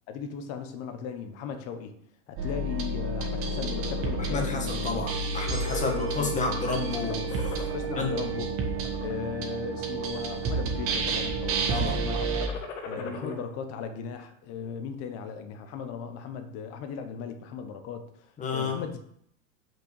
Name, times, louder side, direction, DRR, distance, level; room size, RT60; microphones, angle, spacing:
voice 1, 0.1-2.0 2.3-5.0 5.7-6.6 7.7-8.6 9.0-12.3 12.8-19.0, left 6 dB, 40° left, 8 dB, 1.0 m, -37 dB
sound 1, 2.4-12.5, right 3 dB, 35° right, 1.6 m, -30 dB
sound 2, 3.3-4.3 4.7-5.0 5.3-6.5 6.9-8.0 8.6-9.1 9.7-10.5 10.8-11.3 12.1-13.4, left 4 dB, 85° left, 1.7 m, -41 dB
voice 2, 4.2-7.7 7.9-8.1 11.7-12.0 13.0-13.4 18.4-18.8, left 4 dB, 20° left, 2 dB, 1.6 m, -31 dB
sound 3, 5.5-9.7, right 2 dB, ahead, 2.3 m, -51 dB
6.0 x 5.4 x 6.7 m, 0.70 s
supercardioid pair, 145°, 37 cm